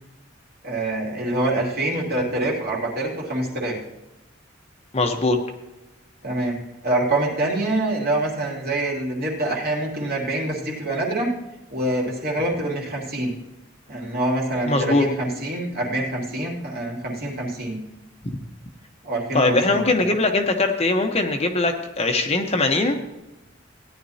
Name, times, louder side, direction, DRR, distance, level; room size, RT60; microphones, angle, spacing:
voice 1, 0.6-3.8 6.2-6.6 6.8-11.3 11.7-13.3 13.9-17.8 19.0-19.8, right 1 dB, 50° right, -2 dB, 2.7 m, -25 dB
voice 2, 4.9-5.4 14.7-15.0 18.2-18.4 19.3-23.0, left 2 dB, 30° left, 4 dB, 0.9 m, -21 dB
16.5 x 10.5 x 2.8 m, 0.99 s
head